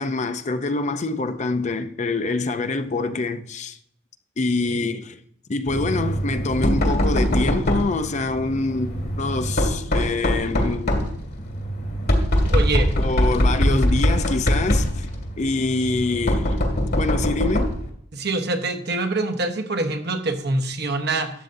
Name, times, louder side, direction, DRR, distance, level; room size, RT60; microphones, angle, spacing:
voice 1, 0.0-3.8 4.4-5.2 5.5-11.0 13.0-15.1 15.4-16.6 17.0-17.7, left 3 dB, 40° left, 0.5 m, -25 dB
Knock, 5.7-17.9, equal, 60° left, 2.0 m, -23 dB
voice 2, 12.5-12.9 13.7-13.8 18.1-21.3, right 2 dB, 60° right, 1.1 m, -25 dB
12.5 x 7.8 x 2.6 m
head